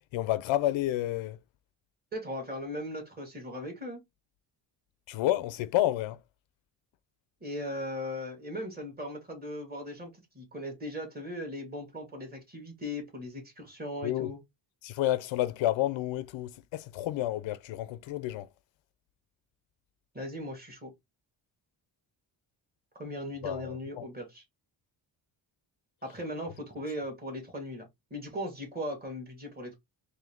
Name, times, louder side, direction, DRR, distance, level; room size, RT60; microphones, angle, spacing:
voice 1, 0.1-1.4 5.1-6.2 14.0-14.3 14.8-18.5 23.4-24.0, left 14 dB, 85° left, 0.6 m, -30 dB
voice 2, 2.1-4.0 7.4-14.4 20.1-20.9 22.9-24.4 26.0-29.8, left 1 dB, 20° right, 1.7 m, -38 dB
3.9 x 2.7 x 3.4 m
cardioid pair, 130°, 45 cm